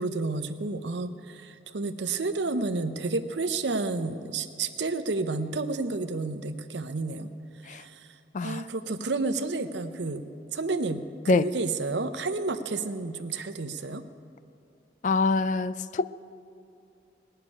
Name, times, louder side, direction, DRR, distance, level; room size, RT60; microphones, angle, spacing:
voice 1, 0.0-7.3 7.6-8.1 8.4-10.2 10.5-11.1 11.3-14.0, right 3 dB, 75° right, 0.7 m, -30 dB
voice 2, 15.0-16.1, left 3 dB, 40° left, 0.3 m, -25 dB
19.0 x 6.7 x 9.7 m
head